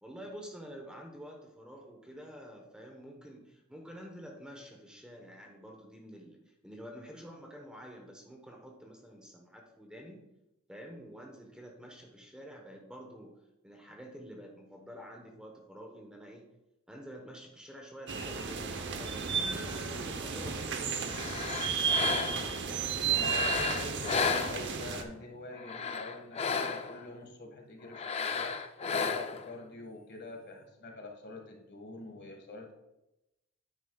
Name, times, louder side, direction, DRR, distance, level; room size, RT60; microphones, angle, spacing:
voice 1, 0.0-10.2 10.7-13.3 13.6-16.5 16.9-21.0, equal, 5° right, 1 dB, 1.1 m, -48 dB
sound 1, 18.1-25.0, right 6 dB, 60° right, 0.9 m, -33 dB
sound 2, 21.1-22.6 23.1-25.0 25.5-27.0 27.9-29.5, left 5 dB, 30° left, 0.5 m, -33 dB
voice 2, 22.3-28.5 28.9-32.7, left 2 dB, 55° left, 2 dB, 1.8 m, -46 dB
9.9 x 9.3 x 2.3 m, 0.93 s
head